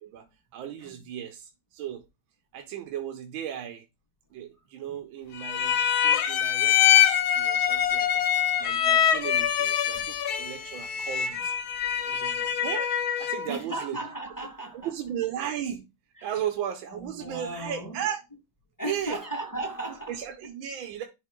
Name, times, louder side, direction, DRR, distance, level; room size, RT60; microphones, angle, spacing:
voice 1, 0.5-2.0 2.5-3.8 4.3-11.5 12.1-14.0 14.8-15.9 16.2-18.2 18.8-19.2 20.1-21.0, right 10 dB, 80° right, 1.5 m, -36 dB
sound 1, 5.4-13.5, left 10 dB, 60° left, 1.1 m, -24 dB
voice 2, 13.5-14.9 16.2-16.3 16.9-18.0 18.8-20.2, right 2 dB, 10° left, 1.6 m, -36 dB
11.0 x 4.0 x 3.7 m
omnidirectional pair, 2.2 m